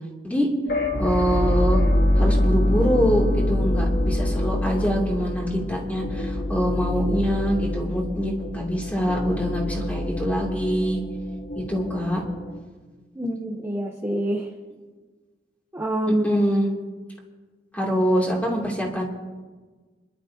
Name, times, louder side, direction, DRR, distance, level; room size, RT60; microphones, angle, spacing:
sound 1, 0.7-12.6, left 1 dB, 55° left, 1.6 m, -25 dB
voice 1, 1.0-1.8 2.2-11.0 11.5-12.2 16.2-16.7 17.7-19.0, equal, 10° left, -2 dB, 2.9 m, -24 dB
voice 2, 13.1-14.5 15.7-16.4, right 1 dB, 15° right, 0 dB, 1.0 m, -26 dB
28.0 x 12.0 x 2.9 m, 1.4 s
head